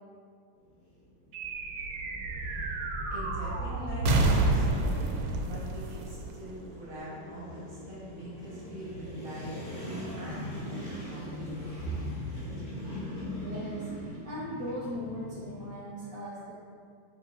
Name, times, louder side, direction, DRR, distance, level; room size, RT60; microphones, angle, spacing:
sound 1, 0.5-15.8, left 1 dB, 45° left, 2.0 m, -42 dB
sound 2, 1.3-7.0, right 2 dB, 90° right, 1.3 m, -29 dB
voice 1, 3.1-11.9, equal, 50° right, -7 dB, 1.9 m, -42 dB
voice 2, 13.1-13.9 14.2-16.5, equal, 5° left, -9 dB, 0.9 m, -38 dB
6.3 x 5.6 x 2.7 m, 2.1 s
omnidirectional pair, 1.9 m